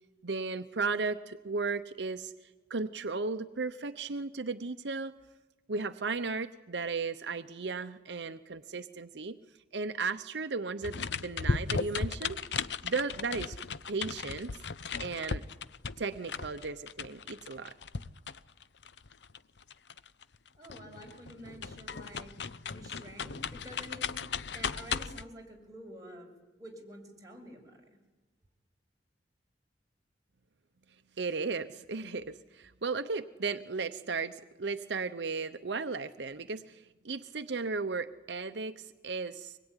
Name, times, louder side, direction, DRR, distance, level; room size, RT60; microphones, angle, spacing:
voice 1, 0.2-2.3 2.7-5.1 5.7-9.4 9.7-12.4 12.8-13.6 13.9-14.6 15.0-15.4 16.0-17.8 31.2-39.6, right 4 dB, 80° right, 10 dB, 0.8 m, -35 dB
sound 1, 10.8-20.4 20.6-25.2, left 5 dB, 80° left, 0.8 m, -36 dB
voice 2, 20.6-26.3 26.6-27.8, equal, 20° right, 0 dB, 6.3 m, -49 dB
24.5 x 21.0 x 9.9 m, 1.1 s
head